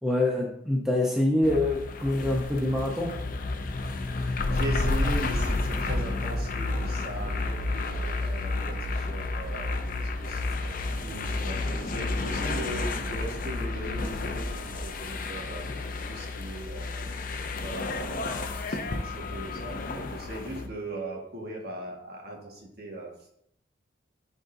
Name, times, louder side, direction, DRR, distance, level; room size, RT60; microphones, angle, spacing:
voice 1, 0.0-3.1, left 1 dB, 5° right, -2 dB, 0.7 m, -25 dB
sound 1, 1.4-20.7, left 2 dB, 45° left, 0.5 m, -31 dB
voice 2, 4.1-10.7 11.0-15.7 16.1-17.1 17.5-23.3, right 1 dB, 55° right, -1 dB, 1.6 m, -39 dB
10.5 x 3.9 x 2.6 m, 0.73 s
head